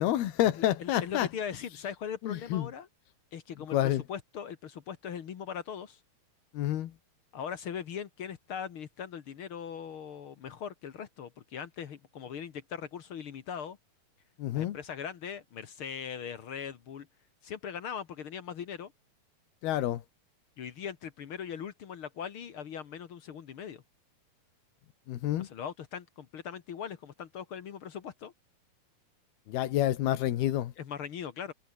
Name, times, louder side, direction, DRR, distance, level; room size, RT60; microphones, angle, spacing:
voice 1, 0.0-1.3 2.2-2.7 3.7-4.0 6.5-6.9 14.4-14.8 19.6-20.0 25.1-25.5 29.5-30.7, left 13 dB, 90° left, 3.4 m, -28 dB
voice 2, 0.6-2.9 3.3-6.0 7.3-13.8 14.5-17.1 17.4-18.9 20.6-23.8 25.4-28.3 30.8-31.5, left 8 dB, 60° left, 1.4 m, -40 dB
omnidirectional pair, 4.3 m